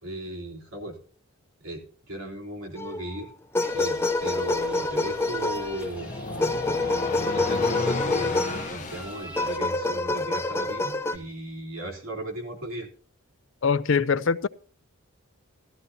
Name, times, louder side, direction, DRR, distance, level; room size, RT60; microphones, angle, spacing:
voice 1, 0.0-1.0 1.6-3.3 3.7-6.9 7.2-12.9, right 1 dB, 70° right, 3.4 m, -37 dB
sound 1, 2.8-3.1 3.5-5.9 6.4-8.7 9.4-11.2, left 2 dB, 10° left, 0.6 m, -27 dB
sound 2, 3.6-9.6, left 2 dB, 5° right, 2.1 m, -42 dB
sound 3, 3.7-9.2, left 3 dB, 35° left, 0.9 m, -34 dB
voice 2, 13.6-14.5, left 5 dB, 60° left, 0.5 m, -23 dB
14.0 x 13.5 x 2.7 m
head